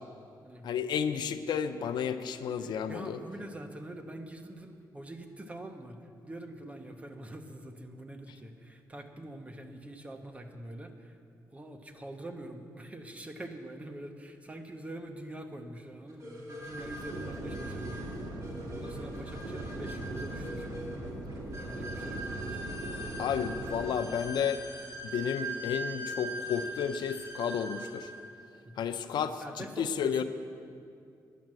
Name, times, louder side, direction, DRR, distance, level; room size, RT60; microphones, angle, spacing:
voice 1, 0.6-3.2 23.2-24.6 25.1-28.1 28.8-30.2, left 7 dB, 80° left, 10 dB, 0.5 m, -32 dB
voice 2, 2.6-11.2 11.5-18.1 18.7-20.7 21.5-22.3 28.7-28.9 29.2-30.2, right 1 dB, 20° right, 5 dB, 0.9 m, -44 dB
sound 1, 16.2-28.2, equal, 45° right, 2.2 m, -41 dB
sound 2, 16.6-23.8, right 1 dB, 80° right, 3.8 m, -40 dB
10.5 x 9.3 x 7.5 m, 2.4 s
wide cardioid pair, 140°, 8 cm